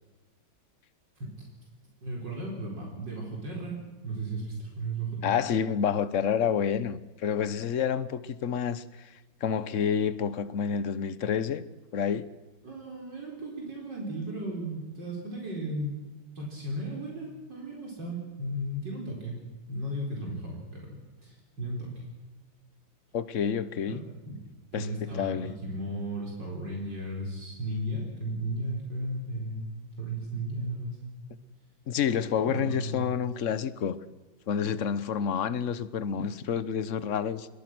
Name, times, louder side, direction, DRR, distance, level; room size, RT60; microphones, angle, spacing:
voice 1, 2.0-3.7 4.0-5.4 12.6-16.0 16.3-19.4 19.7-22.0 23.9-24.0 24.3-24.4 24.7-29.7 30.0-31.0 32.5-33.0, right 1 dB, 60° right, 5.0 m, -35 dB
voice 2, 5.2-9.1 9.4-11.6 11.9-12.3 23.1-24.0 24.7-25.5 31.9-34.0 34.5-37.5, left 7 dB, 50° left, 1.1 m, -29 dB
26.0 x 22.0 x 6.2 m
omnidirectional pair, 2.1 m